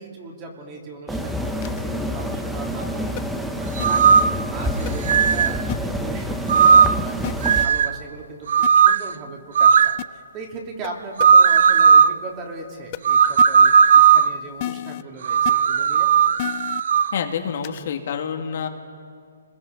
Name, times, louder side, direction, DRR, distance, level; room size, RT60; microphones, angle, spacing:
voice 1, 0.0-16.1, right 3 dB, 20° right, 0 dB, 3.2 m, -38 dB
sound 1, 1.1-7.7, equal, ahead, 0.9 m, -27 dB
sound 2, 1.6-1.8 3.2-3.3 3.8-3.9 4.9-5.0 5.7-5.8 7.2-7.3 8.6-8.7 10.0-10.1 10.8-10.9 11.2-11.3 12.9-13.0 13.4-13.5 14.6-15.0 15.5-15.6 16.4-16.8 17.6-17.8, left 15 dB, 30° left, 0.5 m, -30 dB
sound 3, 3.8-4.4 5.1-5.6 6.5-7.1 7.4-8.0 8.5-9.1 9.6-10.0 11.2-12.1 13.1-14.4 15.2-17.1, right 7 dB, 55° right, 0.5 m, -15 dB
voice 2, 17.1-18.7, left 7 dB, 50° left, 4 dB, 2.2 m, -27 dB
29.5 x 21.0 x 5.4 m, 2.1 s
hypercardioid pair, 160°, 0 cm